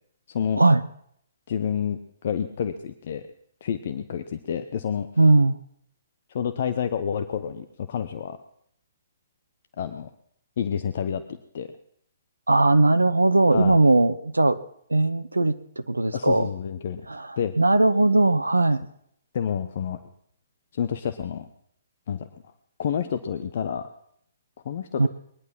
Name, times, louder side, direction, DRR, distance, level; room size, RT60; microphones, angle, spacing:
voice 1, 0.3-0.6 1.5-3.2 3.6-5.1 6.3-8.4 9.8-10.1 10.6-11.7 13.5-13.8 16.1-17.0 17.4-17.5 19.3-20.0 20.7-21.5 22.1-22.3 22.8-23.9 24.6-25.1, left 8 dB, 50° left, 10 dB, 0.9 m, -29 dB
voice 2, 5.2-5.6 12.5-14.6 14.9-15.6 15.9-16.5 17.1-18.8 25.0-25.1, right 2 dB, 85° right, 12 dB, 0.7 m, -19 dB
21.0 x 11.0 x 5.9 m, 0.70 s
figure-of-eight pair, 125°, 0 cm